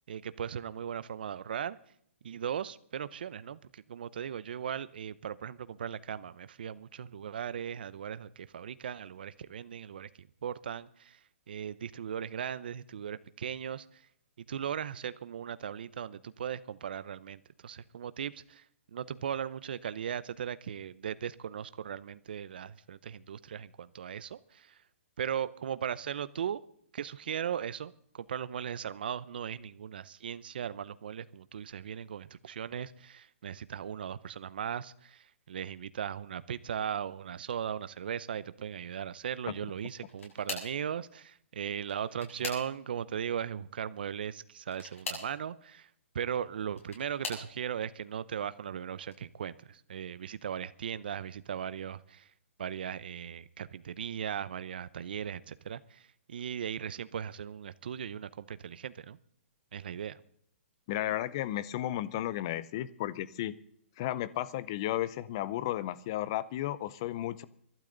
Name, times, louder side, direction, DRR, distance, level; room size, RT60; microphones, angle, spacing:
voice 1, 0.1-1.8 2.2-11.2 11.5-14.1 14.5-24.8 25.2-26.6 26.9-45.9 46.1-52.3 52.6-59.2 59.7-60.2, right 8 dB, 45° right, 0.7 m, -38 dB
sound 1, 39.8-40.8 41.8-43.0 44.6-45.3 46.4-47.5 48.2-48.6 49.0-49.2 50.5-50.6, left 3 dB, 80° left, 7.4 m, -41 dB
voice 2, 60.9-63.6 64.0-67.4, left 13 dB, 20° left, 0.5 m, -33 dB
24.5 x 12.0 x 3.9 m
hypercardioid pair, 180°, 7 cm